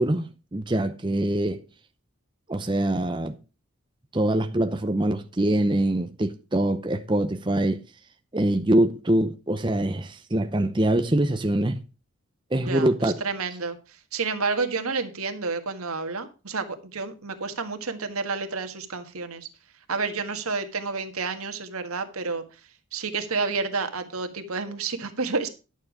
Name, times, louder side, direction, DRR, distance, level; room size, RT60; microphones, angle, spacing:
voice 1, 0.0-1.6 2.5-3.4 4.1-7.8 8.3-11.8 12.5-13.1, right 1 dB, 20° right, 0.7 m, -24 dB
voice 2, 12.6-13.8 14.1-19.5 19.9-22.4 22.9-25.5, right 4 dB, 90° right, 1.6 m, -30 dB
11.0 x 7.0 x 4.8 m
head